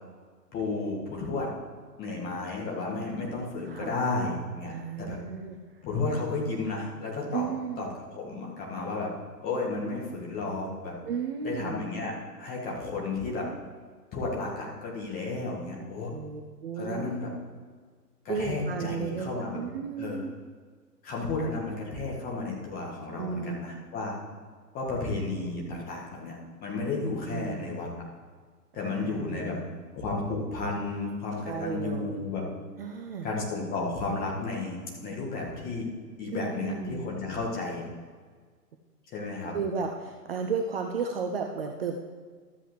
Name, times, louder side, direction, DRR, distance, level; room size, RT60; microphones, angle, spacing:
voice 1, 0.5-1.5 2.0-4.7 5.0-5.2 5.8-7.5 7.8-9.1 9.4-10.9 11.4-12.1 12.4-13.5 14.1-16.1 16.8-17.3 18.3-19.6 20.0-20.2 21.0-24.2 24.7-26.4 26.6-27.9 28.7-29.6 29.9-32.4 33.2-35.9 36.2-37.9 39.1-39.5, left 3 dB, 20° left, -3 dB, 1.7 m, -32 dB
voice 2, 3.7-4.0 4.7-5.8 7.3-7.9 11.1-11.8 16.1-17.1 18.3-20.3 23.2-23.6 27.3-27.7 28.8-29.6 31.3-32.2 32.8-33.3 36.3-37.1 39.5-41.9, right 5 dB, 40° right, 3 dB, 0.6 m, -34 dB
13.0 x 7.7 x 3.2 m, 1.6 s
figure-of-eight pair, 120°, 49 cm